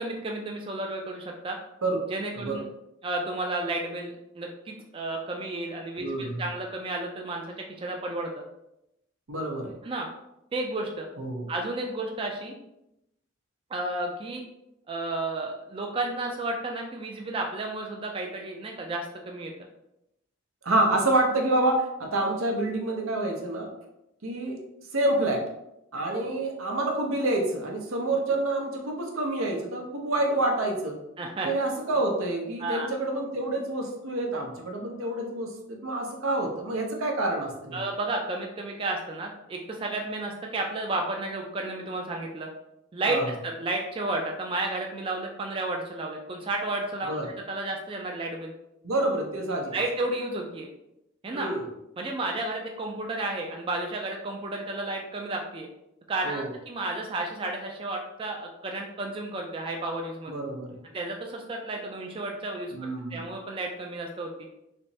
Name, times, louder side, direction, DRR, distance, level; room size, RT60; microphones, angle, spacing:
voice 1, 0.0-1.6 2.1-2.6 3.0-8.4 9.8-10.1 10.5-11.1 11.5-12.5 13.7-14.4 14.9-19.5 31.2-31.5 32.6-32.9 37.7-42.5 42.9-48.5 49.7-50.7 51.2-51.5 52.0-55.7 56.1-60.3 60.9-64.3, right 2 dB, 25° right, 1 dB, 0.3 m, -32 dB
voice 2, 6.0-6.4 9.3-9.7 11.2-11.5 20.6-23.7 24.2-24.6 24.9-25.5 25.9-30.9 31.4-37.8 43.1-43.2 47.0-47.3 48.8-49.7 51.3-51.6 56.2-56.5 60.3-60.8 62.7-63.3, right 2 dB, 85° right, 1 dB, 0.7 m, -28 dB
3.3 x 3.0 x 2.7 m, 0.85 s
head